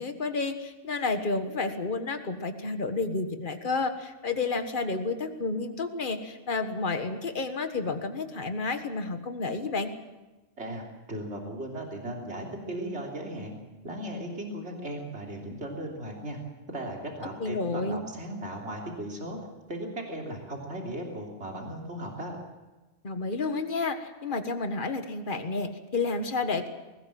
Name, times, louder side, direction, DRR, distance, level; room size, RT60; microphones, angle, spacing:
voice 1, 0.0-9.9 17.4-18.0 23.0-26.7, left 3 dB, 50° left, 7 dB, 1.7 m, -30 dB
voice 2, 10.6-13.6 13.8-16.4 16.7-19.4 19.7-22.4, right 1 dB, 80° right, 0 dB, 3.5 m, -37 dB
21.5 x 19.0 x 7.6 m, 1.2 s
omnidirectional pair, 1.2 m